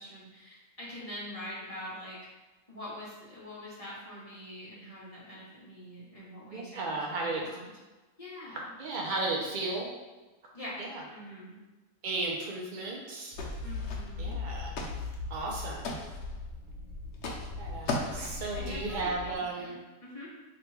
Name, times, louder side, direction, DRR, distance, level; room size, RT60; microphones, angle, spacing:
voice 1, 0.0-2.2 2.7-7.7 8.2-8.6 10.5-10.8 11.1-11.6 13.6-14.4 17.8-20.3, left 1 dB, 25° left, -7 dB, 0.9 m, -44 dB
voice 2, 6.5-7.4 8.8-9.9 10.8-11.0 12.0-13.4 14.2-14.8 15.3-15.8 17.6-19.8, right 3 dB, 65° right, -1 dB, 0.4 m, -34 dB
sound 1, 13.3-19.3, left 3 dB, 50° right, 1.1 m, -39 dB
sound 2, 13.4-14.3 14.6-15.2 15.4-16.4 17.1-17.5 17.9-18.5, left 2 dB, 70° left, 1.2 m, -37 dB
3.3 x 3.0 x 4.6 m, 1.2 s
omnidirectional pair, 1.8 m